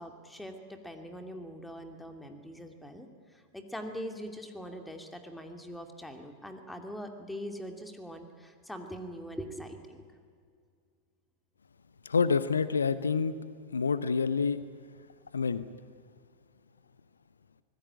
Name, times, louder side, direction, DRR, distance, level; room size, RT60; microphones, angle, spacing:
voice 1, 0.0-10.0, equal, 5° left, 5 dB, 2.6 m, -42 dB
voice 2, 12.0-13.3 13.7-14.6 15.3-15.6, left 5 dB, 75° left, 15 dB, 0.8 m, -27 dB
25.5 x 19.5 x 8.7 m, 2.2 s
figure-of-eight pair, 90°, 0 cm